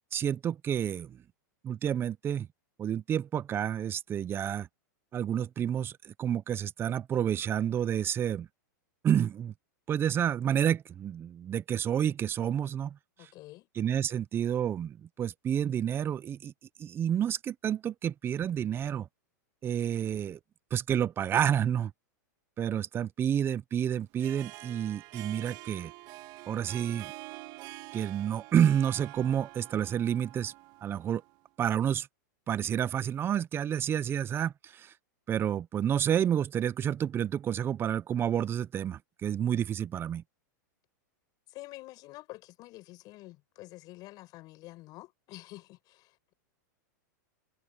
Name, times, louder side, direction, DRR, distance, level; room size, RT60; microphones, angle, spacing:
voice 1, 0.1-1.2 1.6-2.5 2.8-4.7 5.1-8.5 9.0-9.5 9.9-13.0 13.8-16.5 16.8-19.1 19.6-20.4 20.7-21.9 22.6-25.9 26.5-27.1 27.9-30.5 30.8-31.2 31.6-32.1 32.5-34.9 35.3-40.2, right 9 dB, 25° right, 0.7 m, -29 dB
voice 2, 13.2-13.7 41.5-46.3, left 19 dB, 40° left, 5.2 m, -48 dB
Harp, 24.0-31.4, right 21 dB, 45° right, 1.8 m, -47 dB
hypercardioid pair, 130°, 10 cm